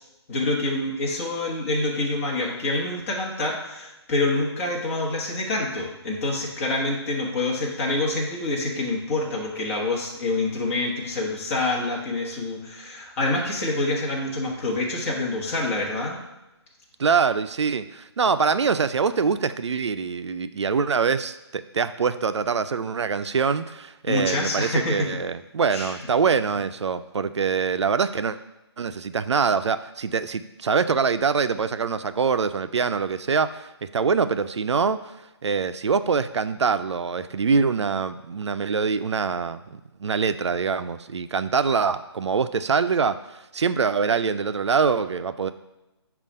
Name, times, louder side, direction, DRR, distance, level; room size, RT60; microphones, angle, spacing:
voice 1, 0.3-16.2 24.1-25.1 25.7-25.9, left 2 dB, 30° left, -2 dB, 1.3 m, -26 dB
voice 2, 17.0-28.4 28.8-35.1 35.4-45.5, right 5 dB, 80° right, 11 dB, 0.4 m, -24 dB
7.2 x 2.5 x 5.4 m, 0.98 s
figure-of-eight pair, 155°, 14 cm